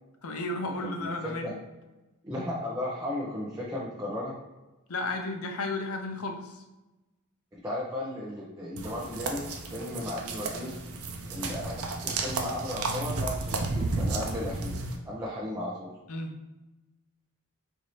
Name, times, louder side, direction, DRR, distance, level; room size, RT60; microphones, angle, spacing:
voice 1, 0.2-1.6 4.9-6.5 16.1-16.3, left 2 dB, 75° left, 4 dB, 0.6 m, -33 dB
voice 2, 0.8-1.5 2.2-4.3 7.5-10.7 11.3-14.8 15.0-15.9, left 1 dB, 15° right, -7 dB, 0.6 m, -35 dB
sound 1, 8.8-14.9, right 3 dB, 80° right, 0.6 m, -33 dB
4.4 x 2.7 x 3.1 m, 1.1 s
head